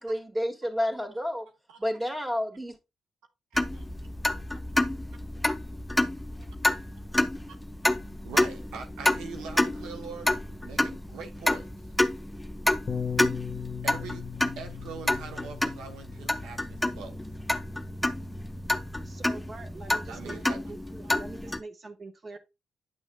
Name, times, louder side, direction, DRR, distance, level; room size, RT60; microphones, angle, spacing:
voice 1, 0.0-1.5 1.8-2.8, equal, 10° right, 1.8 m, -30 dB
sound 1, 3.5-21.6, left 1 dB, 5° left, 0.7 m, -29 dB
voice 2, 3.5-3.9 8.2-11.7 13.8-14.3 14.6-17.3 20.1-20.7 21.0-21.1, right 6 dB, 85° right, 0.8 m, -43 dB
Bass guitar, 12.9-19.1, left 7 dB, 45° left, 0.7 m, -39 dB
voice 3, 19.0-22.4, right 3 dB, 50° right, 1.0 m, -44 dB
9.8 x 6.2 x 2.2 m
supercardioid pair, 50°, 0 cm